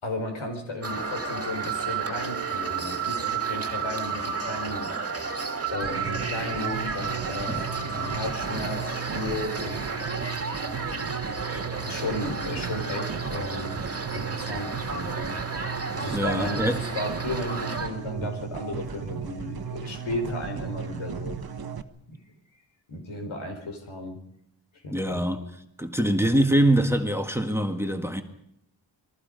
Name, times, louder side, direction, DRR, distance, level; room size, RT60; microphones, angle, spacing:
voice 1, 0.0-4.9 5.7-9.9 11.8-13.8 14.1-15.4 15.9-21.4 22.9-24.2 24.8-25.2, left 2 dB, 85° left, 4.9 m, -34 dB
sound 1, 0.8-17.9, right 5 dB, 30° right, 2.3 m, -32 dB
sound 2, 5.8-21.8, right 7 dB, 50° right, 1.3 m, -36 dB
voice 2, 16.1-16.8 18.2-18.3 24.9-25.5 25.8-28.2, right 1 dB, 5° right, 1.6 m, -24 dB
28.0 x 21.5 x 5.3 m
wide cardioid pair, 150°, 46 cm